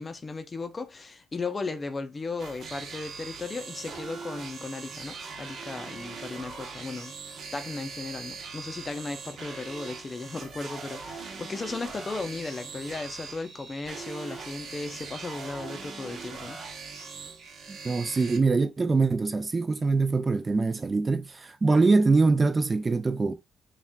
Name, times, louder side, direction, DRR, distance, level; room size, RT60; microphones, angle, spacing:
voice 1, 0.0-7.1 7.5-16.6, left 3 dB, 30° left, 0.6 m, -36 dB
sound 1, 2.4-18.4, right 4 dB, 60° right, 1.0 m, -41 dB
voice 2, 17.7-23.3, right 3 dB, 30° right, 0.4 m, -23 dB
6.9 x 2.4 x 2.3 m
cardioid pair, 90°, 0 cm